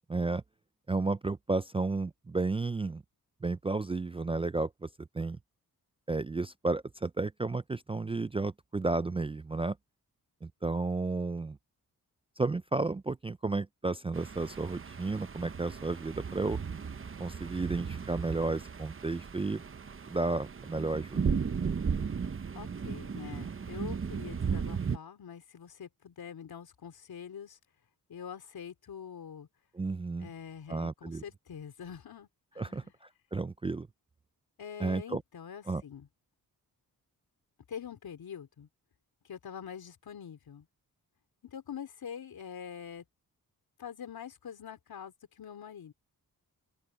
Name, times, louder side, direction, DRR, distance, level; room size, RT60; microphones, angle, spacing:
voice 1, 0.1-0.4 0.9-3.0 3.4-5.4 6.1-9.8 10.4-11.6 12.4-16.6 17.2-19.6 20.1-21.2 29.7-30.3 30.7-31.2 32.6-33.9 34.8-35.2 35.7-35.8, right 3 dB, 15° right, 0.3 m, -32 dB
sound 1, 14.1-25.0, right 6 dB, 35° right, 0.9 m, -36 dB
voice 2, 22.5-27.6 28.1-29.5 30.2-32.9 34.6-36.1 37.7-38.7 39.2-40.7 41.4-43.0 43.8-45.9, left 8 dB, 75° left, 3.9 m, -45 dB
open air
cardioid pair, 80°, 37 cm